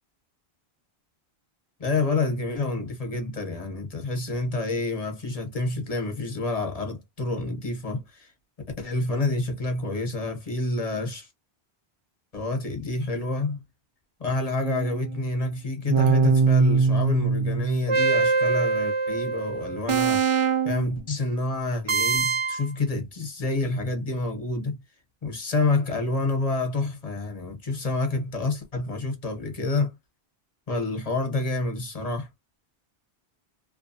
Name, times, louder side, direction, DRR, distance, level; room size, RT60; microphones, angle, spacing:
voice 1, 1.8-8.3 8.8-11.3 12.3-13.6 14.2-20.2 20.6-24.8 25.2-29.9 30.7-32.3, left 2 dB, 40° left, 1.0 m, -28 dB
sound 1, 14.6-15.2 15.9-20.9 21.9-22.7, right 4 dB, 50° right, 0.3 m, -23 dB
2.6 x 2.2 x 2.6 m
omnidirectional pair, 1.1 m